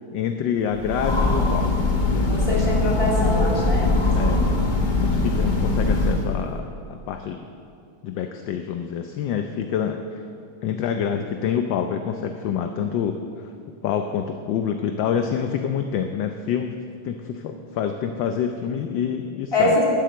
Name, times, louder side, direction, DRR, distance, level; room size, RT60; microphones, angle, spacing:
voice 1, 0.1-1.7 2.1-2.6 4.1-4.4 5.0-7.5 8.0-10.2 10.6-13.5 13.8-16.8 17.0-19.8, left 8 dB, 70° left, 6 dB, 1.2 m, -27 dB
Train, 0.7-6.5, left 2 dB, 30° left, 0.9 m, -21 dB
voice 2, 2.3-3.9 4.2-4.4 19.5-19.8, left 1 dB, 15° left, -5 dB, 2.7 m, -23 dB
11.5 x 10.5 x 7.5 m, 2.5 s
omnidirectional pair, 2.4 m